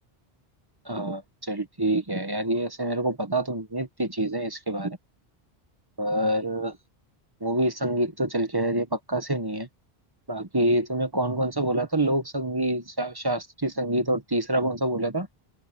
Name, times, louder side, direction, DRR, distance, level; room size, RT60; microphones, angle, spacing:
voice 1, 0.9-5.0 6.0-6.8 7.4-9.7 10.3-15.3, right 1 dB, 25° right, 1.2 m, -26 dB
open air
omnidirectional pair, 1.0 m